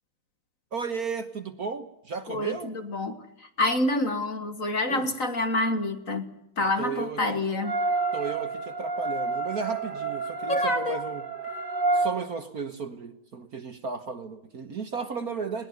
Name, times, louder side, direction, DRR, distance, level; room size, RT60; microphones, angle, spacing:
voice 1, 0.7-2.7 4.9-5.1 6.6-7.4 8.1-11.2 11.9-15.7, right 5 dB, 50° right, 9 dB, 1.5 m, -34 dB
voice 2, 2.3-3.2 3.6-6.3 6.6-7.8 10.5-11.0, left 2 dB, 40° left, 8 dB, 1.7 m, -27 dB
sound 1, 7.6-12.1, right 3 dB, 30° right, 2.5 m, -29 dB
21.5 x 19.5 x 9.4 m, 0.79 s
omnidirectional pair, 2.4 m